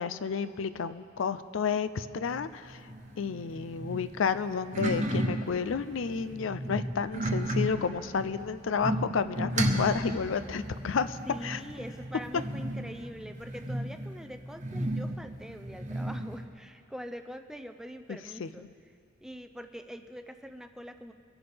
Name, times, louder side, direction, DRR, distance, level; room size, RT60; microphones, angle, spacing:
voice 1, 0.0-2.8 3.2-11.6 18.1-18.5, left 6 dB, 85° left, 13 dB, 0.5 m, -31 dB
sound 1, 2.2-16.5, right 1 dB, 40° right, 1.0 m, -34 dB
sound 2, 3.4-13.7, right 1 dB, 25° left, 3.3 m, -56 dB
voice 2, 11.3-18.7 19.2-21.1, equal, 5° right, 7 dB, 0.5 m, -44 dB
23.0 x 11.0 x 3.4 m, 2.4 s
head